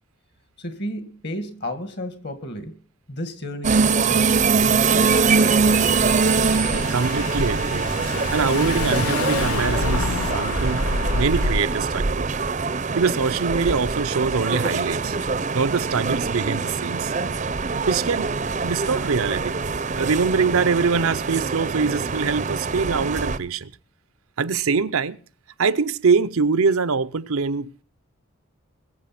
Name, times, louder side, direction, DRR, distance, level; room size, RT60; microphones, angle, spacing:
voice 1, 0.6-2.8 3.1-5.8, equal, 50° left, 1.9 m, -33 dB
sound 1, 3.6-23.4, right 4 dB, 35° right, 0.6 m, -23 dB
Car / Engine, 4.9-11.8, left 3 dB, 80° left, 0.8 m, -28 dB
voice 2, 6.7-7.8 8.3-10.9 11.1-12.3 13.0-15.2 15.5-17.1 17.9-18.3 18.6-19.6 19.9-23.7 24.4-25.2 25.6-27.8, right 5 dB, 80° right, 0.6 m, -23 dB
21.0 x 7.7 x 5.9 m
head